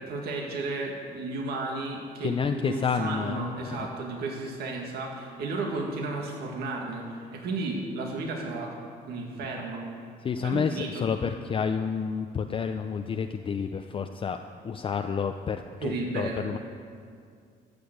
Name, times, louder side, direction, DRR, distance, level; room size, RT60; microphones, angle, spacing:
voice 1, 0.0-8.8 9.1-9.9 10.4-11.0 15.8-16.5, right 3 dB, 70° right, 0 dB, 1.9 m, -33 dB
voice 2, 2.2-3.9 10.2-14.4 14.6-16.6, left 6 dB, 30° left, 6 dB, 0.5 m, -30 dB
14.0 x 6.8 x 8.0 m, 2.3 s
cardioid pair, 110°, 17 cm